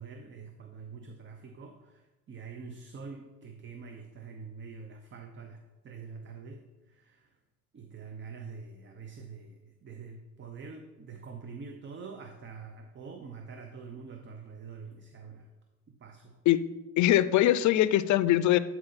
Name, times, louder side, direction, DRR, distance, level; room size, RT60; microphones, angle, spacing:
voice 1, 0.0-7.3 7.7-15.5 16.0-16.4, right 5 dB, 35° right, 5 dB, 0.7 m, -45 dB
voice 2, 17.0-18.6, left 13 dB, 60° left, 15 dB, 0.5 m, -22 dB
8.9 x 4.1 x 4.1 m, 1.1 s
supercardioid pair, 80°, 32 cm